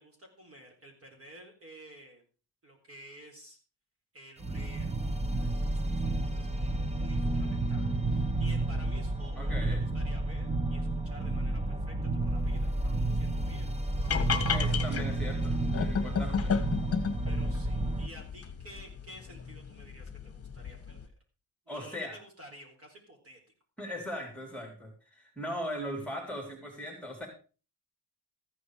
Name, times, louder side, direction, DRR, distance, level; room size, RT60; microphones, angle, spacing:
voice 1, 0.0-2.2 2.6-3.6 4.1-4.9 5.3-14.4 17.2-21.1 21.7-23.4, equal, 30° right, 2 dB, 4.1 m, -52 dB
sound 1, 4.4-18.1, right 2 dB, 15° right, 0.9 m, -31 dB
voice 2, 9.4-9.8 14.5-16.5 21.7-22.2 23.8-27.3, equal, 5° left, 2 dB, 3.5 m, -39 dB
sound 2, 14.0-21.1, left 6 dB, 35° left, 1.6 m, -34 dB
14.5 x 9.5 x 4.9 m, 0.36 s
wide cardioid pair, 165°, 43 cm